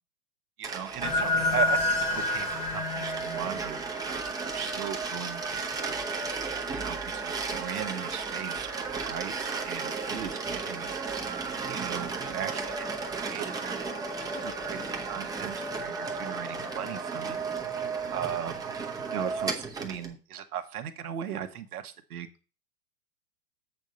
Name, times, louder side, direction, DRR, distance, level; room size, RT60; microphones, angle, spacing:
sound 1, 0.6-20.1, right 4 dB, 10° right, 0.8 m, -34 dB
voice 1, 0.6-3.8 4.0-5.9 6.7-11.0 11.7-13.5 14.2-17.4 18.1-18.5 19.1-22.3, right 9 dB, 65° right, 8 dB, 1.3 m, -37 dB
sound 2, 1.0-5.0, left 2 dB, 15° left, 1.2 m, -29 dB
8.0 x 3.8 x 6.6 m, 0.36 s
hypercardioid pair, 115°, 48 cm